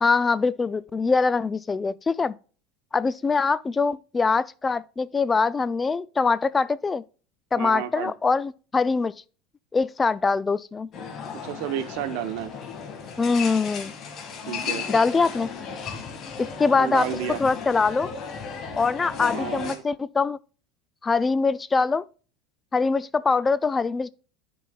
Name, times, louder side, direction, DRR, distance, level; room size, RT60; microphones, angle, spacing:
voice 1, 0.0-2.4 2.9-7.0 7.5-9.1 9.7-10.9 13.2-13.9 14.9-15.5 16.4-17.1 17.4-18.1 18.8-20.4 21.0-22.0 22.7-24.1, left 4 dB, 20° left, 0.3 m, -23 dB
voice 2, 7.6-8.1 11.4-12.5 14.5-14.8 16.7-17.4 19.3-19.8, right 11 dB, 65° right, 0.8 m, -31 dB
sound 1, 10.9-19.8, left 6 dB, 45° left, 1.9 m, -35 dB
11.0 x 4.7 x 2.3 m
hypercardioid pair, 80°, 0 cm